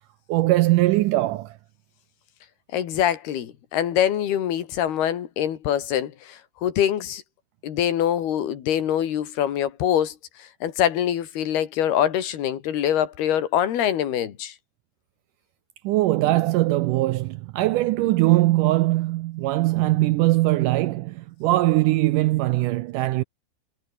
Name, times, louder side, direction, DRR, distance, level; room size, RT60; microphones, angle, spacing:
voice 1, 0.3-1.6 15.8-23.2, right 17 dB, 85° right, 1.8 m, -21 dB
voice 2, 2.7-7.2 7.6-14.6, left 10 dB, 85° left, 4.2 m, -24 dB
omnidirectional pair, 4.4 m